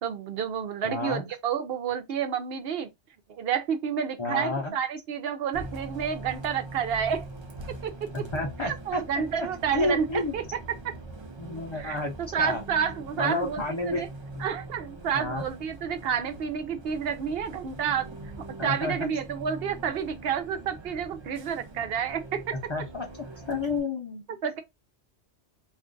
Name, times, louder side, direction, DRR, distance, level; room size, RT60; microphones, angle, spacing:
voice 1, 0.0-2.9 3.3-7.3 7.8-8.2 8.6-10.6 10.8-10.9 11.7-14.1 14.4-18.1 18.6-22.6 24.3-24.6, right 7 dB, 65° right, 0.8 m, -30 dB
voice 2, 0.8-1.3 4.2-4.7 8.3-9.0 9.7-10.3 11.4-12.6 13.2-14.0 14.3-14.4 15.1-15.5 18.6-18.9 22.7-23.1 23.5-24.2, left 2 dB, 30° left, 0.7 m, -30 dB
Bus, 5.5-23.8, right 2 dB, 45° right, 0.3 m, -43 dB
2.5 x 2.4 x 3.7 m
omnidirectional pair, 1.2 m